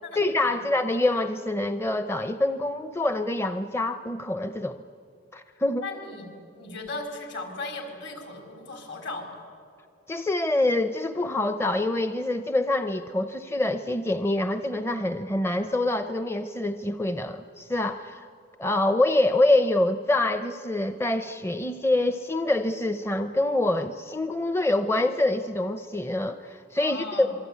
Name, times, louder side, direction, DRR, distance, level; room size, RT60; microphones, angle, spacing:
voice 1, 0.2-4.8 5.3-5.8 10.1-18.3 18.6-27.3, left 2 dB, 15° left, 9 dB, 0.6 m, -25 dB
voice 2, 5.8-6.3 6.5-9.4 26.7-27.3, left 2 dB, 60° left, 4 dB, 4.7 m, -37 dB
26.5 x 23.5 x 9.5 m, 2.5 s
head